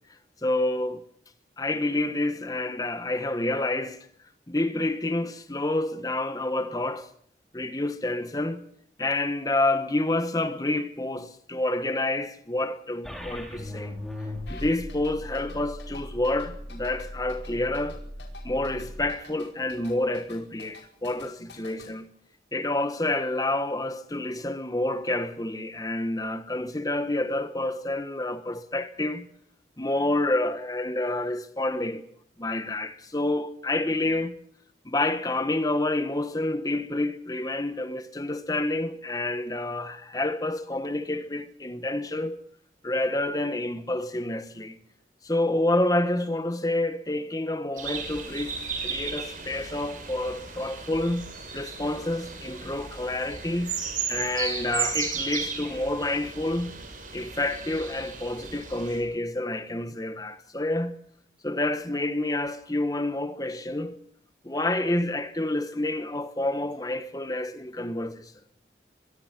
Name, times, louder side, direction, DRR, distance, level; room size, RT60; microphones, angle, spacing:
voice 1, 0.4-1.0 1.6-4.1 4.5-7.1 7.5-8.6 9.0-13.9 14.5-18.0 18.4-22.1 22.5-29.3 29.8-32.0 32.4-34.4 34.8-42.4 42.8-44.8 45.2-48.5 48.8-53.8 54.1-56.8 57.1-61.0 61.4-64.0 64.4-68.3, left 2 dB, 20° left, 1.1 m, -28 dB
sound 1, 13.0-19.1, left 1 dB, ahead, 4.3 m, -39 dB
sound 2, 14.5-21.9, left 2 dB, 80° left, 5.3 m, -44 dB
sound 3, 47.8-59.0, right 6 dB, 45° right, 6.9 m, -35 dB
24.5 x 21.5 x 6.0 m
head